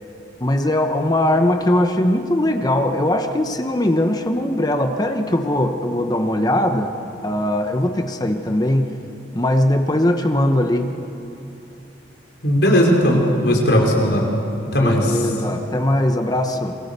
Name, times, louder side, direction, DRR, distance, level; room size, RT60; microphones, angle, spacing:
voice 1, 0.4-6.9 7.2-8.9 9.3-10.9 14.8-16.8, left 1 dB, 20° left, 5 dB, 1.1 m, -20 dB
voice 2, 12.4-14.2 14.7-15.2, equal, 70° left, 0 dB, 4.6 m, -17 dB
26.5 x 23.5 x 6.8 m, 2.8 s
head